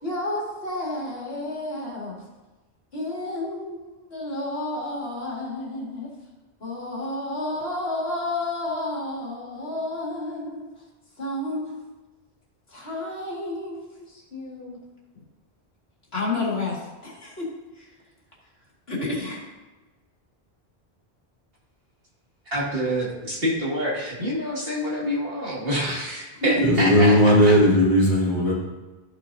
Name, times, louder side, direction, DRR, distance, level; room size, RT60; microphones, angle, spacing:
voice 1, 0.0-2.2 2.9-6.1 6.6-10.7 11.2-11.7 12.7-14.8 16.1-17.5 18.9-19.4 26.4-26.5, left 2 dB, 70° left, -4 dB, 2.5 m, -31 dB
voice 2, 22.5-27.6, equal, 65° right, -5 dB, 2.5 m, -27 dB
voice 3, 26.7-28.5, equal, 50° left, -5 dB, 2.5 m, -17 dB
13.0 x 6.3 x 2.7 m, 1.1 s
omnidirectional pair, 1.1 m